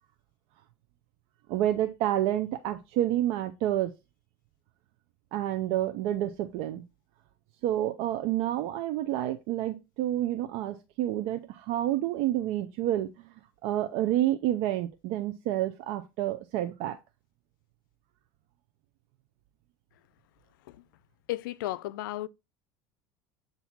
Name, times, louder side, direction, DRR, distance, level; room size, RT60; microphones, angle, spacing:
voice 1, 1.5-3.9 5.3-6.8 7.6-13.3 13.6-17.0, right 13 dB, 65° right, 0.7 m, -29 dB
voice 2, 21.3-22.3, left 16 dB, 90° left, 0.5 m, -34 dB
8.0 x 2.7 x 6.0 m
supercardioid pair, 120°, 11 cm